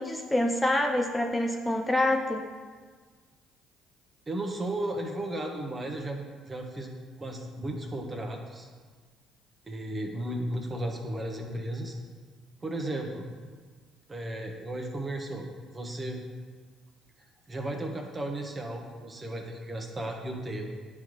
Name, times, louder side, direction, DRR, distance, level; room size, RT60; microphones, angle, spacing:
voice 1, 0.0-2.4, left 1 dB, 10° left, 2 dB, 0.6 m, -26 dB
voice 2, 4.3-8.7 9.6-12.0 12.6-13.3 14.1-16.2 17.5-20.8, right 1 dB, 30° right, 2 dB, 1.2 m, -35 dB
10.0 x 3.9 x 3.2 m, 1.5 s
hypercardioid pair, 60°, 0 cm